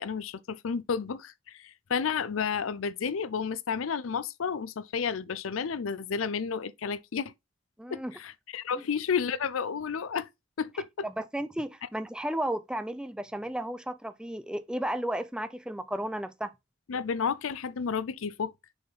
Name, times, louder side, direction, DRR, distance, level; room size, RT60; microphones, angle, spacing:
voice 1, 0.0-7.3 7.9-10.3 10.6-10.9 16.9-18.5, left 6 dB, 80° left, 0.5 m, -31 dB
voice 2, 7.8-8.1 8.7-8.8 11.0-16.5, right 1 dB, 5° right, 0.5 m, -33 dB
6.5 x 4.2 x 4.0 m
head